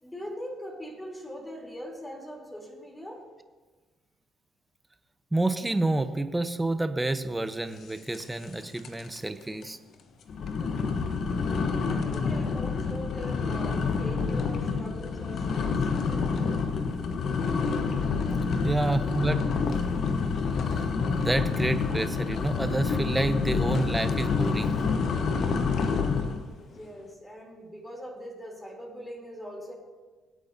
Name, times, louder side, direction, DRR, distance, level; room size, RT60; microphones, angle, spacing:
voice 1, 0.0-3.2 11.4-15.9 18.9-19.3 26.6-29.7, equal, 15° left, -2 dB, 3.5 m, -41 dB
voice 2, 5.3-9.8 18.6-19.8 21.1-24.8, right 2 dB, 15° right, 10 dB, 1.0 m, -29 dB
sound 1, 8.1-8.5 8.8-9.2 9.6-9.7 10.3-26.5, left 5 dB, 60° left, 1.0 m, -28 dB
22.0 x 8.4 x 2.8 m, 1.3 s
hypercardioid pair, 55°, 0 cm